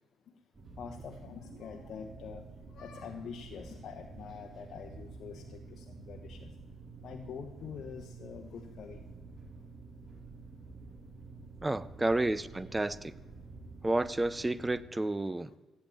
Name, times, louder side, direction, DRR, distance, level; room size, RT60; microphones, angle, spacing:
sound 1, 0.5-14.8, right 3 dB, 35° right, 5.3 m, -49 dB
voice 1, 0.8-2.5 2.7-6.5 7.0-9.0 12.0-12.4, left 6 dB, 65° left, 4 dB, 1.1 m, -45 dB
voice 2, 11.6-13.1 13.8-15.5, right 2 dB, 15° right, 17 dB, 0.6 m, -31 dB
15.5 x 8.7 x 8.5 m, 1.2 s
cardioid pair, 90°, 0 cm